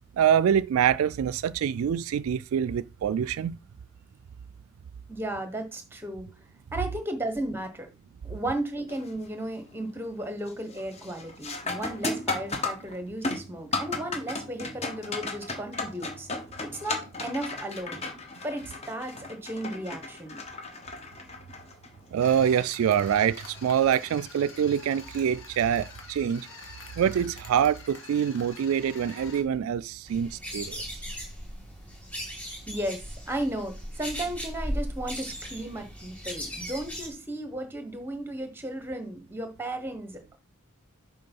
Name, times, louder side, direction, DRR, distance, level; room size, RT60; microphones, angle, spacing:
voice 1, 0.2-3.6 22.1-26.5 27.0-31.0, right 8 dB, 75° right, 0.3 m, -25 dB
voice 2, 5.1-6.3 6.7-7.9 8.2-16.3 16.6-18.1 18.4-20.4 32.7-40.4, right 1 dB, 10° right, 1.1 m, -35 dB
sound 1, 8.9-9.3 9.7-10.1 10.5-24.0 26.5-26.6 27.4-27.6, left 3 dB, 30° left, 1.1 m, -36 dB
sound 2, 22.2-29.4, left 3 dB, 65° left, 2.0 m, -47 dB
sound 3, 30.1-37.1, equal, 5° left, 2.4 m, -37 dB
6.8 x 4.1 x 5.4 m
head